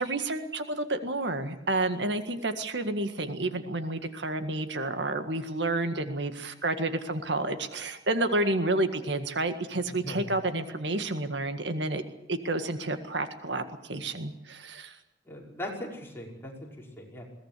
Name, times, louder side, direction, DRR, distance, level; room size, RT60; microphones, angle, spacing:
voice 1, 0.0-12.0 12.3-14.9, right 2 dB, 75° right, 8 dB, 1.8 m, -30 dB
voice 2, 9.8-10.3 15.3-16.7 17.0-17.3, left 1 dB, 15° left, -2 dB, 5.5 m, -39 dB
22.0 x 18.0 x 8.4 m, 0.84 s
head